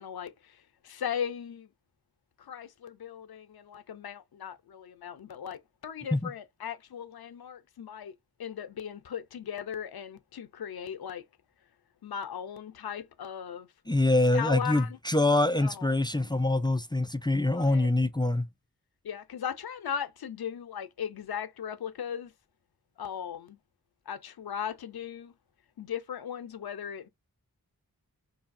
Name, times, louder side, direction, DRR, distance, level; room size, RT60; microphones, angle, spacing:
voice 1, 0.0-1.7 2.4-8.1 8.4-11.2 12.0-13.7 14.3-15.0 15.6-16.3 17.5-17.9 19.0-22.3 23.0-23.6 24.1-25.3 25.8-27.1, left 8 dB, 80° left, 0.6 m, -38 dB
voice 2, 13.9-18.5, left 2 dB, 15° left, 0.3 m, -25 dB
4.6 x 2.7 x 2.5 m
wide cardioid pair, 90°, 37 cm